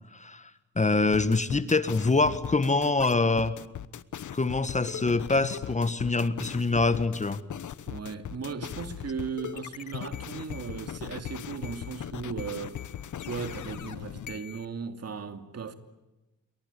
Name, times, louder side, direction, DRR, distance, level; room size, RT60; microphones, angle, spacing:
voice 1, 0.1-0.4 0.7-3.6 4.3-7.4, left 3 dB, 25° left, 1.5 m, -25 dB
sound 1, 1.1-14.6, left 10 dB, 75° left, 1.2 m, -39 dB
voice 2, 7.8-12.8 13.2-15.7, right 5 dB, 50° right, 2.8 m, -37 dB
28.5 x 23.5 x 8.4 m
cardioid pair, 105°, 31 cm